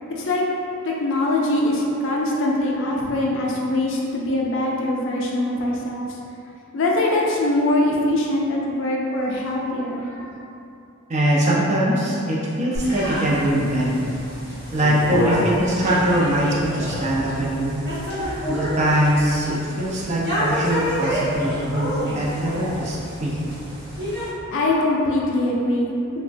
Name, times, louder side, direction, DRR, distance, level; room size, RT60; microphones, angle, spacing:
voice 1, 0.8-6.1 6.7-10.3 24.5-26.2, left 1 dB, 60° left, -2 dB, 0.4 m, -22 dB
voice 2, 11.1-14.0 14.7-17.8 18.2-23.4, right 1 dB, 30° right, -6 dB, 0.4 m, -22 dB
sound 1, 12.8-24.3, equal, 50° right, 0.9 m, -28 dB
3.2 x 2.1 x 2.5 m, 2.7 s
head